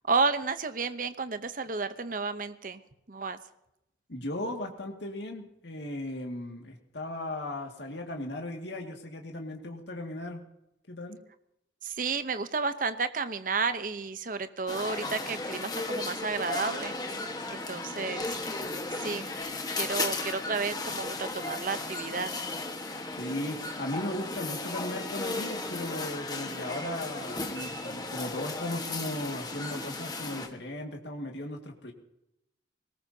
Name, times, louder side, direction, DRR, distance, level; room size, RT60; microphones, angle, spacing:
voice 1, 0.1-2.8 3.1-3.4 11.8-16.9 17.5-18.3 18.9-19.3 19.7-22.4, right 4 dB, 45° right, 11 dB, 0.8 m, -31 dB
voice 2, 4.1-10.4 10.9-11.2 23.2-31.9, left 1 dB, 70° left, 2 dB, 2.1 m, -37 dB
sound 1, 14.7-30.5, left 3 dB, 20° left, 1.4 m, -35 dB
21.5 x 19.0 x 2.8 m, 0.83 s
head